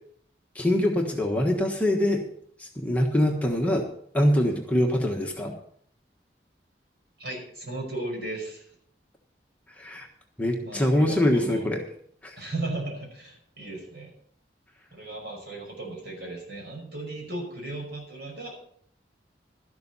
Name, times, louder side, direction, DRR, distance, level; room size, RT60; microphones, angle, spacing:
voice 1, 0.5-2.2 2.6-3.9 4.1-5.5 9.8-10.1 10.4-11.8 12.2-12.4, left 1 dB, 10° left, 0 dB, 1.3 m, -24 dB
voice 2, 7.2-8.7 10.6-11.6 12.4-14.1 14.9-18.6, right 2 dB, 65° right, 0 dB, 5.5 m, -36 dB
12.5 x 12.0 x 4.2 m, 0.63 s
head